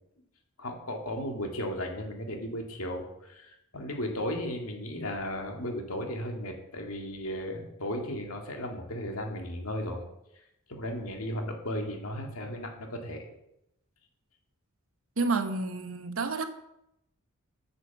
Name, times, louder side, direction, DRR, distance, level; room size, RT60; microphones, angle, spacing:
voice 1, 0.6-10.0 10.7-13.3, left 1 dB, 80° left, 2 dB, 2.2 m, -35 dB
voice 2, 15.2-16.4, right 3 dB, 70° right, 9 dB, 1.0 m, -29 dB
9.0 x 6.8 x 7.3 m, 0.83 s
head